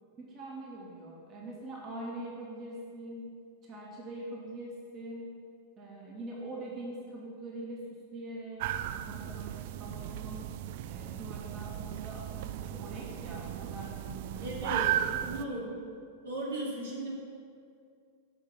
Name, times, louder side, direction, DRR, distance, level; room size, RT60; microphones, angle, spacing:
voice 1, 0.2-3.3 3.6-5.3 5.8-10.5 10.9-15.5, right 1 dB, 30° right, -3 dB, 2.0 m, -43 dB
sound 1, 8.6-15.5, right 12 dB, 50° right, 0.4 m, -36 dB
voice 2, 14.4-14.9 15.3-15.7 16.2-17.1, right 1 dB, 65° right, -4 dB, 2.2 m, -36 dB
10.0 x 6.1 x 6.4 m, 2.3 s
figure-of-eight pair, 90°, 0 cm